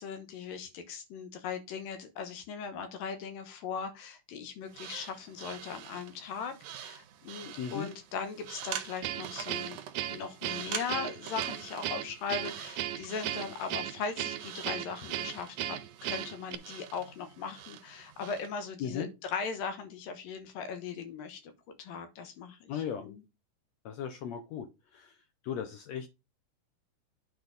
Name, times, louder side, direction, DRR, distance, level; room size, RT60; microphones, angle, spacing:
voice 1, 0.0-9.8 10.1-21.5 21.8-23.2, left 5 dB, 90° left, 8 dB, 3.0 m, -39 dB
sound 1, 4.7-18.5, right 10 dB, 75° right, 1.6 m, -45 dB
voice 2, 7.6-7.9 18.8-19.1 22.7-23.2 23.9-24.7 24.9-25.1 25.4-26.1, left 8 dB, 70° left, 7 dB, 1.7 m, -36 dB
Guitar, 9.0-16.6, right 12 dB, 90° right, 2.4 m, -36 dB
9.4 x 4.5 x 4.0 m, 0.25 s
omnidirectional pair, 3.9 m